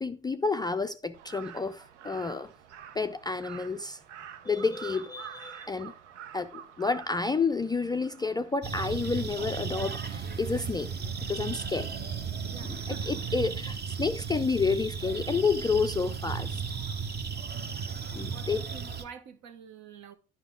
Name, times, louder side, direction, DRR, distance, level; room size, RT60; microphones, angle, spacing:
voice 1, 0.0-2.5 3.0-4.0 4.4-5.9 6.3-10.9 11.3-11.9 12.6-16.6 18.1-18.6, left 4 dB, 15° left, 0.4 m, -30 dB
Crow, 1.1-8.5, right 9 dB, 85° right, 0.7 m, -47 dB
sound 1, 8.6-19.0, right 6 dB, 30° right, 1.0 m, -35 dB
voice 2, 12.5-13.4 17.5-20.1, right 7 dB, 55° right, 1.1 m, -48 dB
10.0 x 5.8 x 3.7 m
hypercardioid pair, 65°, 34 cm